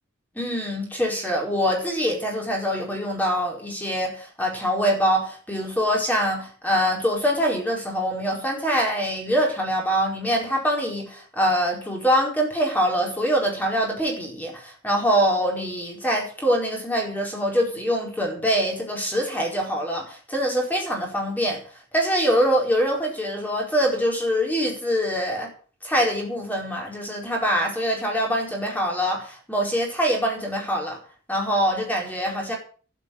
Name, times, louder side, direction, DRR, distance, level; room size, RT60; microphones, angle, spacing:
voice 1, 0.3-21.6 21.9-25.5 25.8-31.0 31.3-32.5, equal, 10° left, 0 dB, 4.7 m, -24 dB
12.0 x 10.0 x 8.8 m, 0.42 s
head